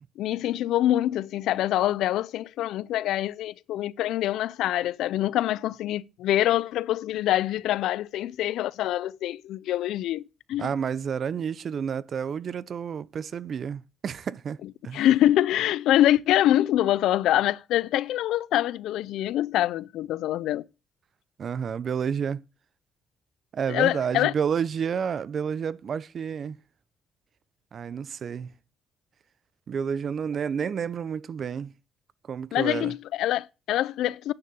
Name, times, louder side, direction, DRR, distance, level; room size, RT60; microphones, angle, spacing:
voice 1, 0.2-10.2 10.5-10.7 14.9-20.6 23.7-24.3 32.5-34.3, left 13 dB, 85° left, 0.4 m, -25 dB
voice 2, 10.6-14.6 14.8-15.0 21.4-22.4 23.5-26.6 27.7-28.5 29.7-31.7 32.3-32.9, right 7 dB, 55° right, 0.6 m, -30 dB
9.7 x 6.8 x 6.8 m
cardioid pair, 90°, 0 cm